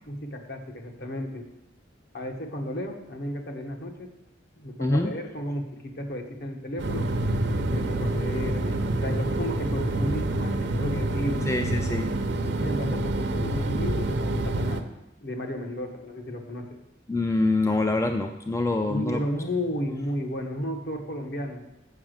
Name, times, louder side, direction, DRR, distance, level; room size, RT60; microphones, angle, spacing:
voice 1, 0.1-1.5 2.1-4.1 4.6-7.1 7.7-11.5 12.6-14.8 15.2-16.8 18.9-21.7, equal, 55° left, 3 dB, 1.3 m, -33 dB
voice 2, 4.8-5.1 11.5-12.1 17.1-19.2, left 2 dB, 15° left, 5 dB, 0.4 m, -25 dB
sound 1, 6.8-14.8, right 1 dB, 60° right, 0.7 m, -27 dB
7.2 x 7.0 x 6.4 m, 0.92 s
head